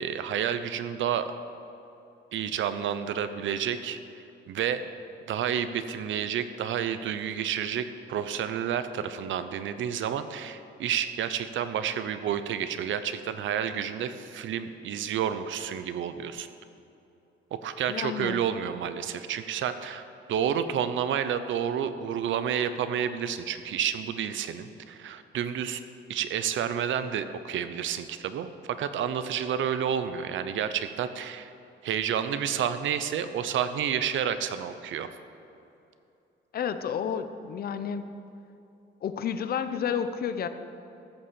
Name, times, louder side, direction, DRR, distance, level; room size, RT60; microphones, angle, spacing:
voice 1, 0.0-1.3 2.3-4.0 4.5-4.8 5.3-16.5 17.6-20.0 20.3-25.8 26.1-31.5 31.8-35.1, right 8 dB, 75° right, 11 dB, 0.7 m, -30 dB
voice 2, 17.9-18.4 36.5-38.1 39.0-40.5, left 8 dB, 50° left, 10 dB, 0.7 m, -31 dB
14.5 x 6.9 x 7.5 m, 2.7 s
cardioid pair, 175°, 20 cm